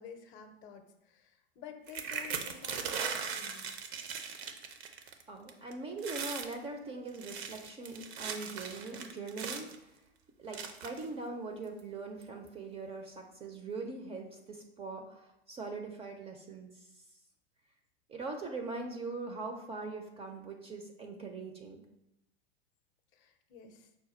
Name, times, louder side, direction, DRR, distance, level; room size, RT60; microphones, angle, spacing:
voice 1, 0.0-3.7 23.1-23.9, left 7 dB, 40° left, 7 dB, 0.6 m, -50 dB
sound 1, 1.9-5.2 5.5-5.7 6.0-6.5 7.1-9.8 10.5-11.1 11.8-11.9 12.2-12.5, right 6 dB, 70° right, 0.7 m, -39 dB
voice 2, 5.3-9.7 10.4-13.1 13.4-16.8 18.1-21.8, right 3 dB, 20° right, 3 dB, 0.4 m, -41 dB
5.7 x 2.2 x 4.2 m, 0.86 s
hypercardioid pair, 105°, 32 cm